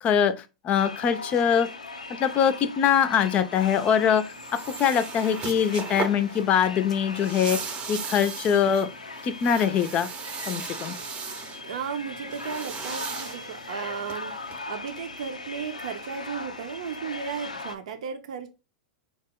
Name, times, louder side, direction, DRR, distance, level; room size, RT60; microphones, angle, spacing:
voice 1, 0.0-0.3 0.6-1.7 2.1-7.6 7.9-8.9 9.2-10.1 10.5-10.9, left 8 dB, 35° left, 0.5 m, -23 dB
sound 1, 0.7-17.7, left 3 dB, 90° left, 0.4 m, -40 dB
sound 2, 3.8-14.6, right 6 dB, 30° right, 0.7 m, -38 dB
voice 2, 11.5-14.3 14.7-18.5, right 6 dB, 65° right, 0.6 m, -35 dB
4.9 x 2.1 x 3.6 m
figure-of-eight pair, 95°, 4 cm